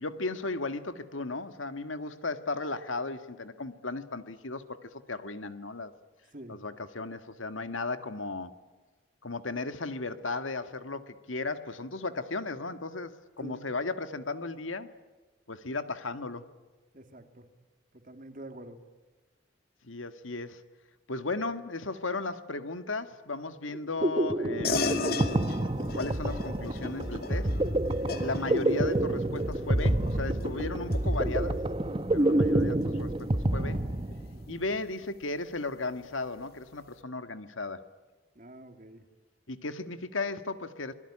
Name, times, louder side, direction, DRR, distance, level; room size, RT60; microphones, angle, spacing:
voice 1, 0.0-5.9 6.5-8.5 9.2-14.9 15.5-16.4 19.8-20.6 21.1-25.1 25.9-27.5 28.2-31.6 32.1-33.8 34.5-37.8 39.5-40.9, left 3 dB, 90° left, 10 dB, 1.8 m, -35 dB
voice 2, 16.9-17.5 17.9-18.8 28.2-28.4 32.2-32.4 34.3-34.6 38.3-39.1, right 1 dB, 45° right, 7 dB, 2.5 m, -47 dB
sound 1, 23.7-34.5, right 1 dB, 25° right, 0.9 m, -28 dB
sound 2, 24.6-34.5, left 3 dB, 50° left, 2.4 m, -37 dB
26.5 x 22.0 x 10.0 m, 1.3 s
head